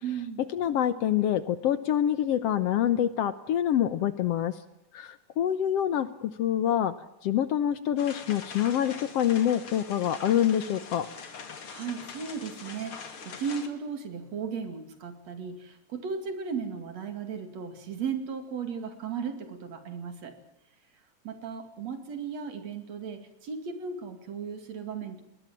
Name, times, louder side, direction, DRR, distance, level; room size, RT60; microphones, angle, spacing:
voice 1, 0.0-0.4 11.7-20.4 21.2-25.2, right 6 dB, 65° right, 8 dB, 3.7 m, -36 dB
voice 2, 0.5-4.6 4.9-6.9 7.2-11.1, left 10 dB, 65° left, 14 dB, 1.8 m, -26 dB
sound 1, 8.0-13.7, left 5 dB, 50° left, 2.9 m, -43 dB
21.0 x 20.5 x 7.5 m, 0.87 s
omnidirectional pair, 3.3 m